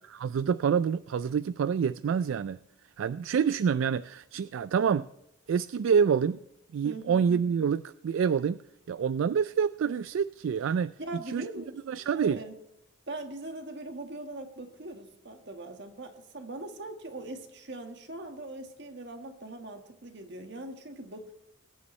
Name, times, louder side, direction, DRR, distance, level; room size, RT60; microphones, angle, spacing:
voice 1, 0.2-2.6 3.0-5.1 5.5-6.4 6.7-8.6 8.9-10.9 11.3-11.5 11.9-12.4, right 7 dB, 75° right, 16 dB, 0.3 m, -27 dB
voice 2, 6.8-7.2 11.0-12.5 13.1-21.3, right 2 dB, 55° right, 6 dB, 1.6 m, -41 dB
20.5 x 9.7 x 3.2 m, 0.82 s
head